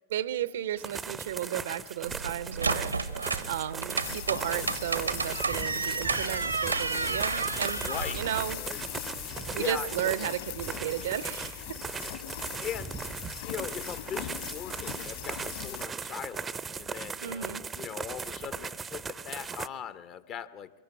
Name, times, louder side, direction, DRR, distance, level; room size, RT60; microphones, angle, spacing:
voice 1, 0.1-2.9 3.5-7.8 8.1-8.6 9.5-11.8 17.2-17.7, right 11 dB, 60° right, 18 dB, 0.8 m, -34 dB
sound 1, 0.8-19.7, right 5 dB, 15° right, 0.7 m, -39 dB
sound 2, 2.0-8.6, right 4 dB, 80° right, 1.1 m, -32 dB
sound 3, 4.0-15.9, left 13 dB, 55° left, 3.4 m, -40 dB
voice 2, 7.8-8.2 8.6-8.8 9.5-10.1 12.6-13.1 13.4-20.7, left 9 dB, 35° left, 13 dB, 1.1 m, -40 dB
24.5 x 22.0 x 8.7 m, 1.2 s
figure-of-eight pair, 90°, 0 cm